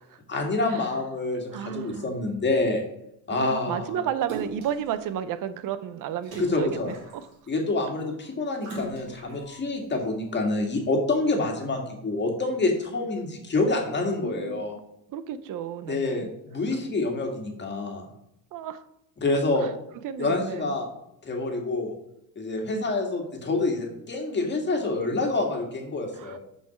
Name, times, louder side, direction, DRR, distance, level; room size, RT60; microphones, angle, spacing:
voice 1, 0.3-2.8 3.3-4.0 6.4-6.9 7.5-14.8 15.9-18.1 19.2-19.7 20.2-20.9 21.2-21.9 22.4-26.4, left 2 dB, 25° left, 2 dB, 1.9 m, -27 dB
voice 2, 1.5-2.2 3.3-7.3 14.2-14.6 15.1-16.3 18.5-18.8 19.6-19.7 20.0-20.7 22.7-22.9 26.1-26.4, right 9 dB, 55° right, 12 dB, 0.8 m, -33 dB
Splash splatter, 4.3-4.9 6.2-7.5 8.6-9.4 10.0-10.1, right 2 dB, 80° right, 3.5 m, -39 dB
6.1 x 5.7 x 6.0 m, 0.80 s
cardioid pair, 115°, 39 cm